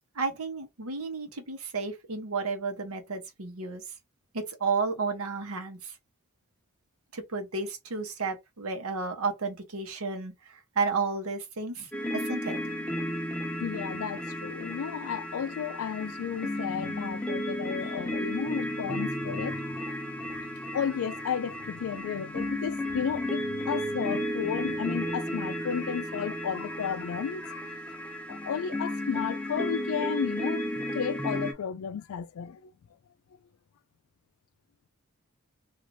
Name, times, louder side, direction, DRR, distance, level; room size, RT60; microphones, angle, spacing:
voice 1, 0.1-3.8 4.3-6.0 7.1-12.6, right 4 dB, 80° right, 0.9 m, -32 dB
sound 1, 11.9-31.5, equal, 5° left, 0.4 m, -34 dB
voice 2, 13.6-20.5 20.7-28.0 28.3-30.6 30.9-32.7 33.3-33.4, left 7 dB, 70° left, 0.3 m, -33 dB
2.6 x 2.5 x 3.1 m
head